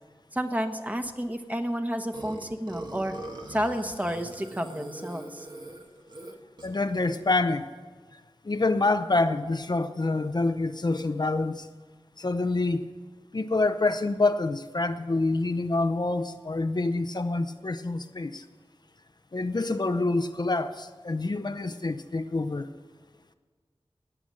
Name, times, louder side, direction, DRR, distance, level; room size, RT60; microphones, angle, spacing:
voice 1, 0.3-3.1 3.5-5.5, equal, 15° right, 5 dB, 1.3 m, -30 dB
Burping eructation, 2.1-6.9, right 2 dB, 50° right, 1.7 m, -41 dB
voice 2, 6.6-7.7 8.4-11.7 12.2-12.9 13.3-18.4 19.3-22.7, left 2 dB, 50° left, 8 dB, 0.7 m, -27 dB
19.5 x 7.0 x 7.6 m, 1.5 s
wide cardioid pair, 65°, 10 cm